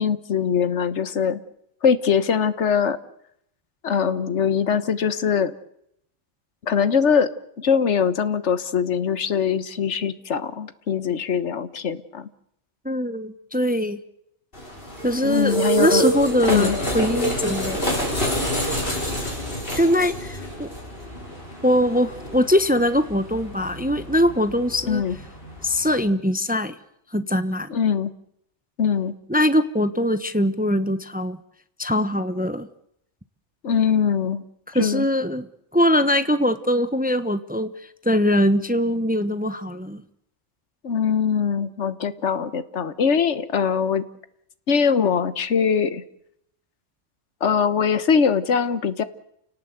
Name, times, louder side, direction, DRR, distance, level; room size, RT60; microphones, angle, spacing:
voice 1, 0.0-1.4 1.8-3.0 3.8-5.5 6.6-7.3 7.6-12.3 15.2-16.1 16.5-16.8 24.9-25.2 27.7-28.1 28.8-29.1 33.6-34.4 34.7-35.1 40.8-44.0 44.7-46.0 47.4-49.0, left 7 dB, 70° left, 13 dB, 1.5 m, -22 dB
voice 2, 12.8-14.0 15.0-17.9 19.7-20.7 21.6-25.0 25.6-26.8 27.1-27.7 29.3-31.4 31.8-32.7 34.7-37.7 38.0-40.0, equal, 10° right, 11 dB, 0.9 m, -22 dB
sound 1, 14.5-26.0, right 1 dB, 50° left, 6.6 m, -28 dB
29.5 x 18.0 x 8.1 m, 0.77 s
omnidirectional pair, 1.2 m